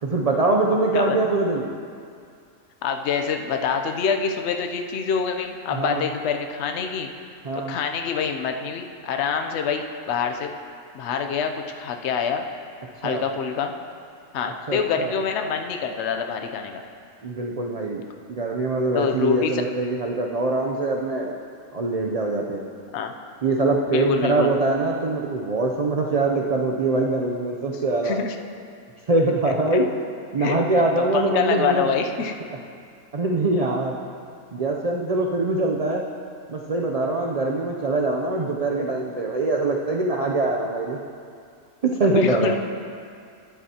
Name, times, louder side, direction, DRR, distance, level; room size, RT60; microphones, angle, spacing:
voice 1, 0.0-1.8 5.7-6.0 7.4-7.7 13.0-13.2 14.7-15.1 17.2-18.0 18.3-21.4 21.7-22.6 23.4-28.2 29.1-29.8 30.3-31.9 33.1-34.0 34.5-36.0 36.5-41.0 41.8-42.6, right 2 dB, 50° right, 0 dB, 0.4 m, -23 dB
voice 2, 2.8-7.1 7.5-10.5 10.9-12.4 13.0-13.7 14.3-16.8 18.9-19.6 22.9-23.1 23.9-24.5 28.0-28.4 29.7-29.8 30.4-30.6 31.1-32.3 42.1-42.6, left 6 dB, 65° left, 4 dB, 0.9 m, -26 dB
12.0 x 9.5 x 2.9 m, 2.3 s
omnidirectional pair, 1.4 m